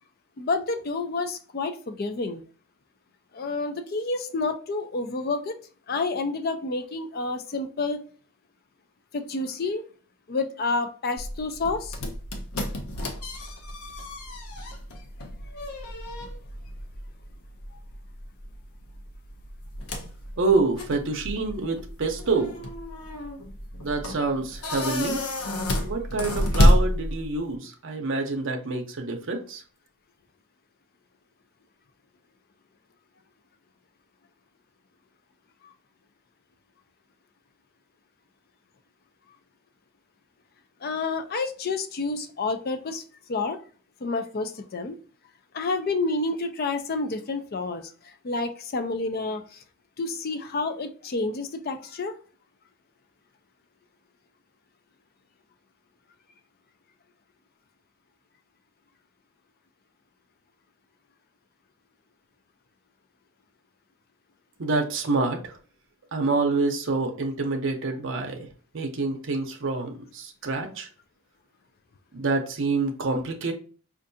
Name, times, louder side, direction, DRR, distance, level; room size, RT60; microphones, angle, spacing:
voice 1, 0.4-2.4 3.3-5.5 5.9-8.0 9.1-9.8 10.3-12.0 35.6-35.7 40.8-43.0 43.3-43.6 44.0-45.0 45.5-49.6 50.0-52.1, left 3 dB, 45° left, 8 dB, 0.4 m, -29 dB
sound 1, 11.2-27.5, equal, 85° left, 0.6 m, -29 dB
voice 2, 20.4-22.6 23.8-25.2 25.8-29.6 64.6-65.6 66.1-68.5 68.7-70.9 72.1-73.5, right 3 dB, 60° right, 3 dB, 0.6 m, -27 dB
4.5 x 2.5 x 2.6 m, 0.39 s
head